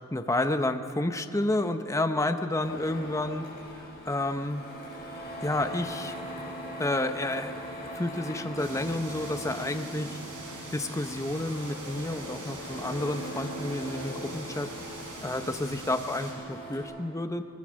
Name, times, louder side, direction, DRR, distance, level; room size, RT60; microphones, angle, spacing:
voice 1, 0.1-3.4 3.8-4.6 5.4-6.2 6.8-7.5 7.9-10.2 10.7-14.7 14.9-17.4, left 1 dB, 15° left, 7 dB, 0.8 m, -30 dB
Printer, 2.6-16.8, equal, 45° left, 6.4 m, -40 dB
sound 1, 8.6-16.3, right 2 dB, 90° right, 5.1 m, -43 dB
22.0 x 20.0 x 6.4 m, 2.7 s
head